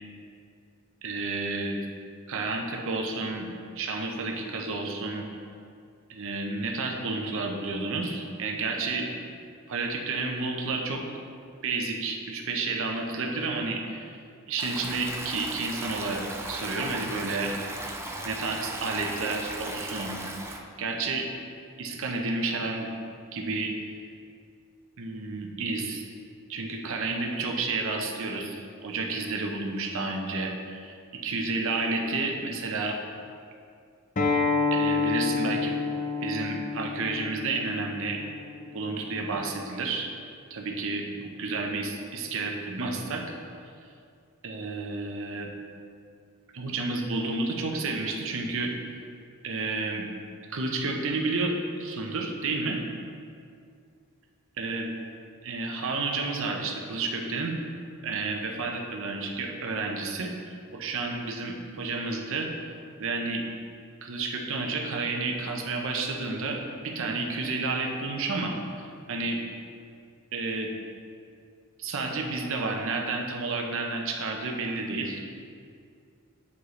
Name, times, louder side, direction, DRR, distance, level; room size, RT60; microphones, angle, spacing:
voice 1, 1.0-1.8 2.3-3.5 3.8-5.3 6.1-9.1 9.7-11.0 11.6-14.2 14.5-17.5 18.2-20.2 20.8-21.3 21.8-22.9 23.3-23.7 25.0-26.1 26.5-31.0 31.2-33.0 34.7-35.8 36.2-38.2 38.7-40.1 40.5-43.2 44.4-45.5 46.5-48.7 49.4-50.0 50.5-52.8 54.6-54.9 55.4-57.6 58.0-62.5 63.0-63.4 64.0-69.4 70.3-70.7 71.8-75.3, right 3 dB, 65° right, 2 dB, 0.7 m, -31 dB
Stream, 14.6-20.6, right 2 dB, 10° right, 0.4 m, -37 dB
Acoustic guitar, 34.2-39.4, left 4 dB, 35° left, 0.6 m, -29 dB
8.3 x 4.8 x 3.1 m, 2.4 s
head